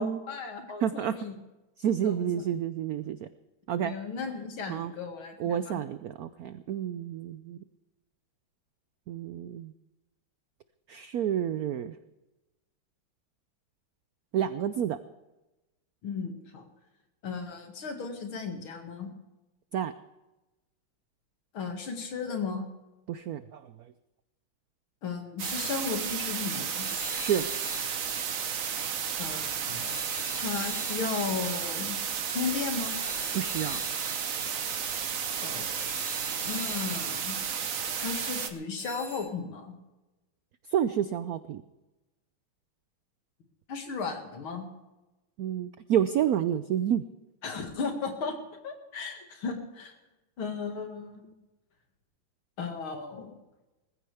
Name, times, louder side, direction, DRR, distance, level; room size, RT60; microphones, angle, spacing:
voice 1, 0.0-1.4 2.0-2.3 3.8-5.8 16.0-16.7 17.2-19.1 21.5-22.7 25.0-26.9 29.2-30.0 30.4-32.0 32.3-33.0 35.4-35.7 36.4-37.4 38.0-39.8 43.7-44.7 47.4-48.4 48.6-50.0 50.4-51.3 52.6-53.3, left 5 dB, 80° left, 4 dB, 2.8 m, -35 dB
voice 2, 0.8-1.1 1.8-3.3 3.7-3.9 4.7-4.9 5.4-7.6 9.1-9.7 10.9-12.0 14.3-15.0 19.7-19.9 23.1-23.6 27.1-27.5 33.3-33.8 40.7-41.6 45.4-47.0, right 9 dB, 80° right, 12 dB, 0.8 m, -29 dB
sound 1, 25.4-38.5, right 7 dB, 50° right, 1.2 m, -33 dB
sound 2, 26.8-29.3 29.8-38.3 38.8-39.2, left 3 dB, 10° left, 6.0 m, -45 dB
20.0 x 15.0 x 3.5 m, 1.0 s
omnidirectional pair, 2.2 m